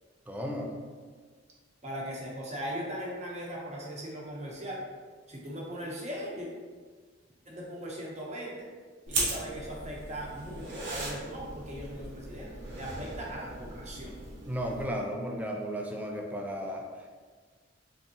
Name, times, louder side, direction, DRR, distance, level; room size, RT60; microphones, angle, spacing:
voice 1, 0.3-0.7 14.5-17.1, equal, 10° right, 1 dB, 0.4 m, -34 dB
voice 2, 1.8-4.8 5.3-6.5 7.5-8.7 9.1-14.2, equal, 35° right, -3 dB, 0.9 m, -39 dB
sound 1, 9.1-14.8, right 2 dB, 70° right, 0.9 m, -38 dB
3.6 x 3.3 x 2.8 m, 1.5 s
head